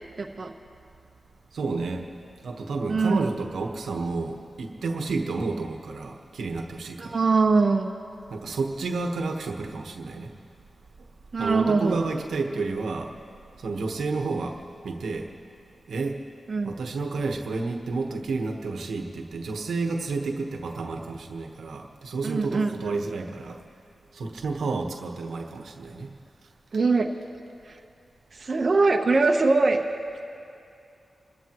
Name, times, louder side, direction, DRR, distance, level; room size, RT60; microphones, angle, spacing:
voice 1, 0.2-0.5 2.9-3.3 7.0-7.9 11.3-12.0 16.5-16.7 22.2-22.7 26.7-27.1 27.7-27.8 28.3-29.8, right 3 dB, 55° right, 2 dB, 1.0 m, -22 dB
voice 2, 1.5-2.1 2.4-7.2 8.3-10.3 11.4-13.1 13.6-15.3 15.9-16.2 16.6-23.6 24.1-26.1, right 3 dB, 90° right, 3 dB, 1.2 m, -30 dB
28.5 x 14.0 x 3.0 m, 2.5 s
cardioid pair, 60°, 0 cm